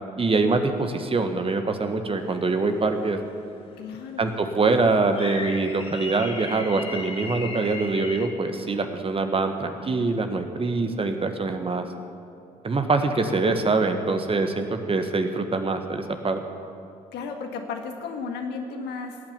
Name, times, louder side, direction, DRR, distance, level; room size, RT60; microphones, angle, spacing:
voice 1, 0.2-3.2 4.2-11.9 12.6-16.4, right 3 dB, 30° right, 7 dB, 1.5 m, -24 dB
sound 1, 2.2-2.7 3.1-3.2 5.1-8.3, left 3 dB, 30° left, 3.1 m, -36 dB
voice 2, 3.8-4.4 17.1-19.2, left 5 dB, 60° left, 4 dB, 1.9 m, -34 dB
18.0 x 8.9 x 8.3 m, 2.7 s
figure-of-eight pair, 50°, 20 cm